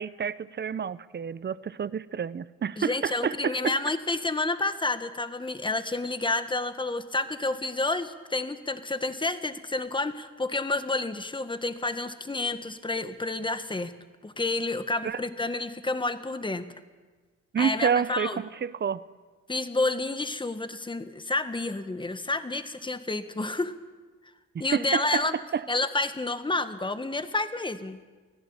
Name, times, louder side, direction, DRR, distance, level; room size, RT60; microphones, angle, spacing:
voice 1, 0.0-3.8 15.0-15.2 17.5-19.0 24.5-25.3 25.5-25.7, right 7 dB, 35° right, 0.8 m, -29 dB
voice 2, 2.8-13.9 14.2-16.6 17.6-18.4 19.5-23.7 24.6-25.4 25.7-28.0, left 2 dB, 15° left, 1.6 m, -29 dB
24.0 x 16.0 x 8.9 m
cardioid pair, 90°, 30 cm